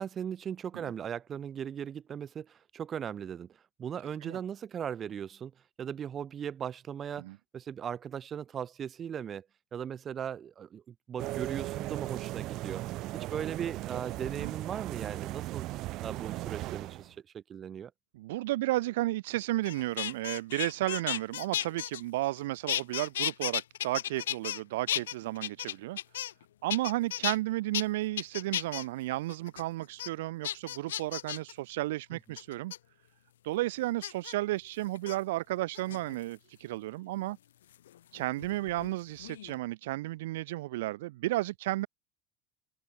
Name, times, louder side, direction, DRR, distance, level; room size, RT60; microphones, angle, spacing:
voice 1, 0.0-5.5 5.8-7.3 7.5-9.5 9.7-12.8 13.1-15.7 16.0-17.9, right 8 dB, 35° right, 7.9 m, -38 dB
sound 1, 11.2-17.1, right 17 dB, 55° right, 1.7 m, -37 dB
voice 2, 18.2-26.0 26.6-32.7 33.4-37.4 38.1-41.9, right 17 dB, 80° right, 2.4 m, -33 dB
sound 2, 19.6-22.4 22.7-24.6 24.9-26.4 26.7-27.4 27.7-27.8 28.2-28.8 29.3-29.6 30.0-30.1 30.4-31.5 32.4-32.8 34.0-34.3 34.9-35.2 35.7-36.3 37.7-38.9 39.2-39.6, left 12 dB, 90° left, 2.4 m, -34 dB
open air
hypercardioid pair, 95°, 0 cm